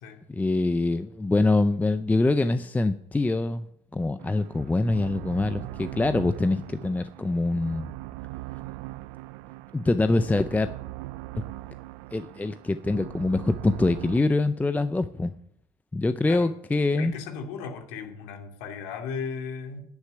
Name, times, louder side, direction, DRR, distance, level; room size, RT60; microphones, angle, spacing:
voice 1, 0.3-3.6 3.9-7.9 9.7-10.7 12.1-15.3 15.9-17.1, left 2 dB, 10° left, 11 dB, 0.5 m, -24 dB
sound 1, 4.2-14.2, right 18 dB, 80° right, 0.6 m, -40 dB
voice 2, 17.0-19.8, left 5 dB, 80° left, 3 dB, 2.6 m, -36 dB
9.7 x 8.2 x 9.8 m, 0.72 s
supercardioid pair, 105°, 16 cm